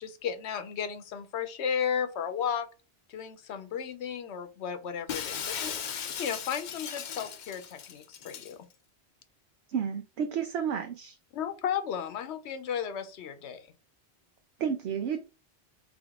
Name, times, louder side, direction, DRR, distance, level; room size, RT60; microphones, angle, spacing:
voice 1, 0.0-2.7 3.1-8.7 11.3-13.7, left 7 dB, 85° left, 1.0 m, -34 dB
Shatter, 5.1-8.5, left 8 dB, 55° left, 0.6 m, -37 dB
voice 2, 9.7-11.2 14.6-15.2, right 7 dB, 80° right, 0.9 m, -31 dB
3.5 x 3.5 x 3.5 m
omnidirectional pair, 1.1 m